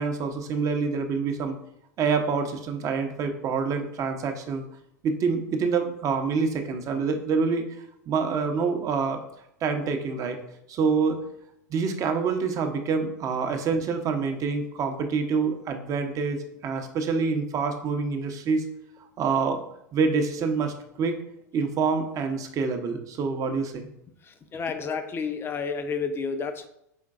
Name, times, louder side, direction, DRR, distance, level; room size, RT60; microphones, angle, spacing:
voice 1, 0.0-1.6 2.0-4.6 5.0-7.7 8.1-9.2 9.6-10.4 10.7-11.2 11.7-18.7 19.2-19.6 19.9-21.2 21.5-23.9, right 5 dB, 35° right, 6 dB, 0.7 m, -26 dB
voice 2, 24.5-26.7, left 5 dB, 25° left, 9 dB, 0.5 m, -30 dB
5.1 x 3.8 x 2.4 m, 0.76 s
hypercardioid pair, 90°, 9 cm